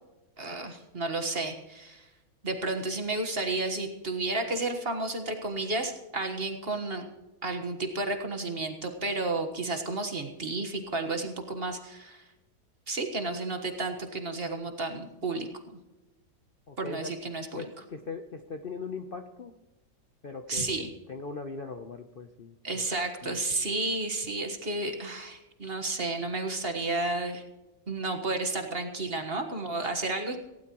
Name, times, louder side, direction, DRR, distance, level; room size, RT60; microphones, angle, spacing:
voice 1, 0.4-2.1 2.4-7.0 7.4-12.2 12.9-15.8 16.8-17.6 20.5-20.9 22.6-27.4 27.9-30.4, right 2 dB, 40° right, 4 dB, 1.6 m, -32 dB
voice 2, 16.7-17.1 17.6-19.5 20.2-20.8 21.1-22.8 23.2-23.4, left 4 dB, 40° left, 5 dB, 0.8 m, -40 dB
18.0 x 16.5 x 3.1 m, 1.0 s
omnidirectional pair, 1.8 m